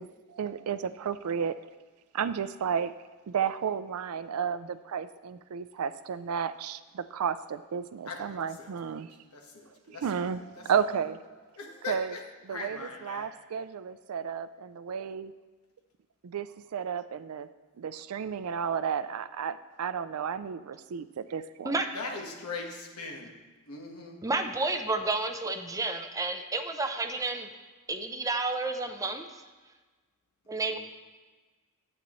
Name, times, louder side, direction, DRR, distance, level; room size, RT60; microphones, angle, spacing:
voice 1, 0.0-1.6 2.1-2.9 3.3-9.1 9.9-11.2 11.9-12.1 12.4-15.3 16.2-17.5 17.8-21.8, right 7 dB, 75° right, 13 dB, 0.4 m, -32 dB
voice 2, 9.3-10.5 11.6-12.2 12.5-13.3 21.9-23.3 23.7-24.2 30.6-30.8, left 3 dB, 80° left, 1 dB, 1.3 m, -40 dB
voice 3, 24.2-27.5 27.9-29.3 30.5-30.8, right 3 dB, 15° right, 6 dB, 0.5 m, -30 dB
11.0 x 8.3 x 3.1 m, 1.3 s
head